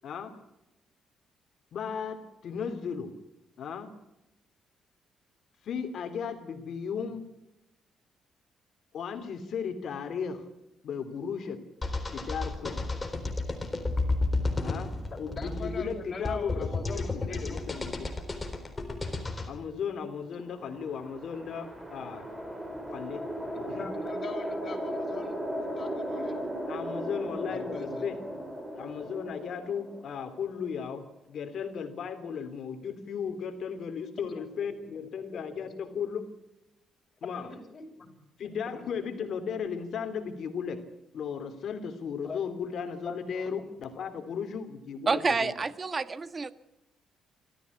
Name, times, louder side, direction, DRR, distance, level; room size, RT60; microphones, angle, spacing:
voice 1, 0.0-0.4 1.7-3.1 3.6-3.9 5.6-7.2 8.9-10.4 10.8-11.6 12.1-12.8 14.6-14.9 15.2-18.1 19.5-22.3 22.9-23.2 23.7-23.9 26.7-28.2 28.7-36.3 37.2-37.5 38.4-40.8 41.1-45.5, left 6 dB, 65° left, 7 dB, 2.8 m, -35 dB
sound 1, 11.8-19.5, left 2 dB, 20° left, 3.9 m, -32 dB
voice 2, 15.1-17.7 23.5-26.5 27.5-28.4 34.4-34.5 35.3-35.7 37.3-38.1 38.7-39.1 42.2-42.4 43.0-43.5, left 4 dB, 40° left, 3 dB, 6.1 m, -42 dB
sound 2, 20.6-31.0, equal, 10° right, 4.7 m, -37 dB
voice 3, 45.1-46.5, right 4 dB, 30° right, 13 dB, 1.4 m, -28 dB
25.5 x 14.5 x 8.4 m, 0.91 s
cardioid pair, 90°, 0 cm